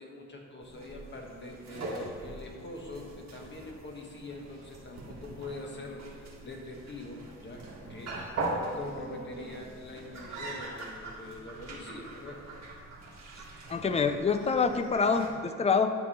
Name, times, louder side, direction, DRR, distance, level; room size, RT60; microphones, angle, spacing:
voice 1, 0.0-8.2 8.8-12.4, left 2 dB, 35° left, 1 dB, 1.2 m, -44 dB
sound 1, 0.6-15.3, right 2 dB, 60° right, 1.6 m, -41 dB
voice 2, 13.7-15.9, left 5 dB, 20° left, 8 dB, 0.4 m, -26 dB
9.6 x 3.6 x 6.3 m, 2.1 s
cardioid pair, 125°, 31 cm